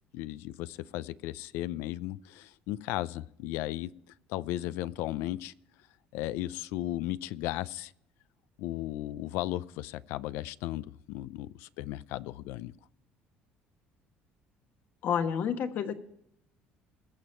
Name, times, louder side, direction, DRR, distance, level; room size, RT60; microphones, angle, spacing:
voice 1, 0.1-3.9 4.3-5.5 6.1-7.9 8.6-12.7, left 15 dB, 85° left, 0.5 m, -35 dB
voice 2, 15.0-15.9, left 7 dB, 50° left, 1.3 m, -29 dB
21.0 x 7.1 x 4.4 m
cardioid pair, 145°, 4 cm